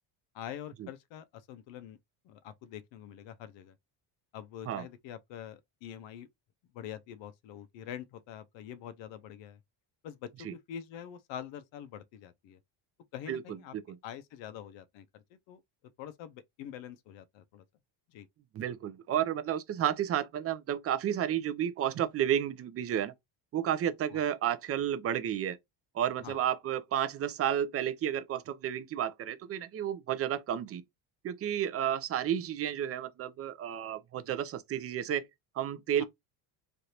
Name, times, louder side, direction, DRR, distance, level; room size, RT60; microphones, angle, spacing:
voice 1, 0.3-2.0 2.2-3.8 4.3-6.3 6.7-9.6 10.0-12.6 13.1-13.7 14.0-15.6 16.0-17.6 18.1-18.3 24.1-24.2 26.2-26.4 36.0-36.1, left 10 dB, 65° left, 0.6 m, -45 dB
voice 2, 18.5-23.1 23.5-25.6 25.9-30.8 31.2-35.3 35.5-36.0, right 10 dB, 30° right, 0.4 m, -32 dB
3.3 x 2.5 x 2.8 m
cardioid pair, 125°, 48 cm